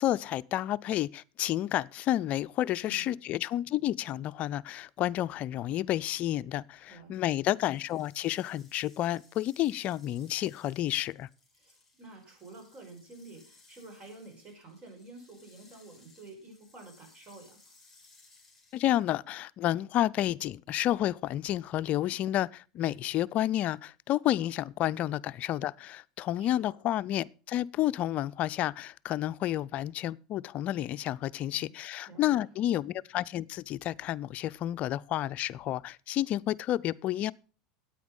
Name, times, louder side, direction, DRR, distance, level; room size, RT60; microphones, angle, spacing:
voice 1, 0.0-11.3 18.7-37.3, left 13 dB, 45° left, 0.4 m, -30 dB
voice 2, 6.9-7.5 11.5-17.6 24.8-24.9 26.4-26.5 31.5-31.7 32.1-32.6, right 3 dB, 35° right, 5.4 m, -50 dB
sound 1, 7.6-19.2, left 3 dB, 5° left, 4.2 m, -62 dB
9.2 x 8.9 x 5.4 m
hypercardioid pair, 95°, 3 cm